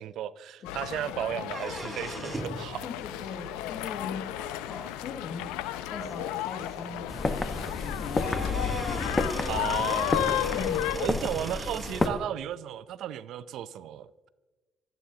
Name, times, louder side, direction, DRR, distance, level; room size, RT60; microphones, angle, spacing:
voice 1, 0.0-2.9 9.5-10.3 11.0-14.3, right 11 dB, 75° right, 0.5 m, -35 dB
sound 1, 0.6-11.1, left 12 dB, 85° left, 0.5 m, -33 dB
sound 2, 1.4-2.6 4.4-4.5 5.4-5.5 5.9-6.0 6.3-6.4 7.8-7.9 8.2-12.2, right 2 dB, 15° right, 5.1 m, -39 dB
voice 2, 2.8-4.3 4.6-5.5 5.9-8.5 10.5-11.0, left 5 dB, 60° left, 1.3 m, -39 dB
sound 3, 7.1-12.1, left 3 dB, 25° left, 1.2 m, -31 dB
26.0 x 9.1 x 2.9 m
supercardioid pair, 60°, 0 cm